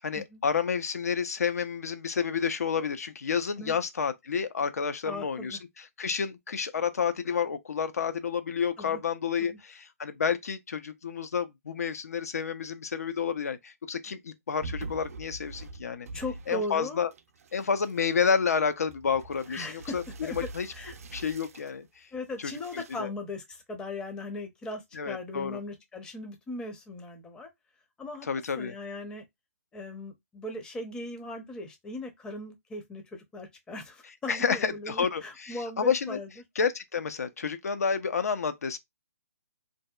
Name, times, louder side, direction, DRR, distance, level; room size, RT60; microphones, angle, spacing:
voice 1, 0.0-16.1 16.5-17.1 17.5-20.0 20.5-20.7 21.1-21.9 23.0-23.1 25.0-25.6 28.3-28.7 34.3-36.2 36.6-38.8, left 6 dB, 80° left, 0.4 m, -30 dB
voice 2, 5.0-5.6 8.8-9.0 9.4-9.6 16.1-17.0 19.5-20.0 20.2-21.0 22.1-27.5 28.0-28.3 28.6-29.2 29.7-36.3, left 2 dB, 10° left, 0.5 m, -38 dB
sound 1, 14.6-16.8 17.1-21.8 22.3-23.0, right 3 dB, 70° right, 0.4 m, -44 dB
2.6 x 2.2 x 2.3 m
hypercardioid pair, 145°, 8 cm